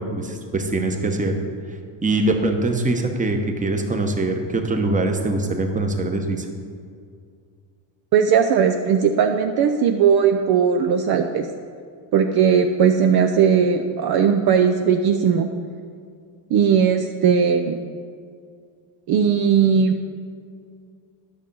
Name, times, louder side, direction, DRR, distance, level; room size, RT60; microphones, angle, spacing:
voice 1, 0.0-1.4 2.0-6.5, right 2 dB, 15° right, 4 dB, 1.0 m, -23 dB
voice 2, 8.1-11.5 12.1-15.5 16.5-17.8 19.1-20.0, right 7 dB, 50° right, 5 dB, 0.6 m, -18 dB
10.5 x 6.3 x 5.4 m, 2.2 s
cardioid pair, 110°, 48 cm